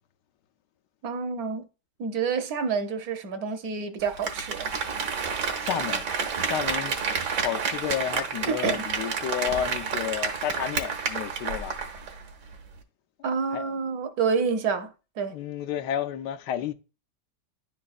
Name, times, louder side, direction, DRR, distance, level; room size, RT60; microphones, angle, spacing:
voice 1, 1.0-1.7 2.0-4.8 8.5-8.8 13.2-14.9 15.2-15.4, right 5 dB, 70° right, 1.2 m, -28 dB
Applause, 4.0-12.2 12.5-12.6, right 5 dB, 85° right, 1.6 m, -30 dB
voice 2, 5.6-6.0 6.4-7.0 7.2-11.8 13.5-13.7 15.3-16.7, left 10 dB, 90° left, 1.2 m, -31 dB
10.5 x 4.0 x 2.4 m
omnidirectional pair, 1.8 m